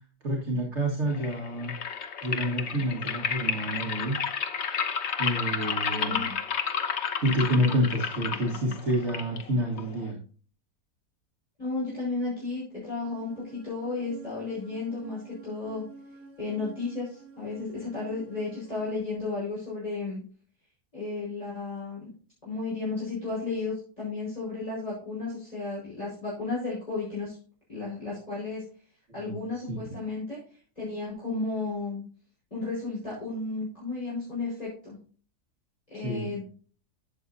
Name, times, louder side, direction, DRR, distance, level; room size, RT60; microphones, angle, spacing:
voice 1, 0.2-1.7 2.2-4.2 5.2-6.3 7.2-10.2 29.2-30.0 36.0-36.4, equal, 45° right, -2 dB, 2.0 m, -28 dB
sound 1, 1.1-10.1, left 6 dB, 50° left, 1.0 m, -32 dB
voice 2, 5.9-6.3 11.6-15.8 16.4-20.2 20.9-22.1 22.4-27.4 27.7-28.6 29.1-32.0 32.5-35.0 35.9-36.4, left 3 dB, 25° left, -8 dB, 5.1 m, -33 dB
sound 2, 13.1-19.0, right 4 dB, 60° right, 1.7 m, -50 dB
12.5 x 7.9 x 2.7 m, 0.41 s
omnidirectional pair, 1.8 m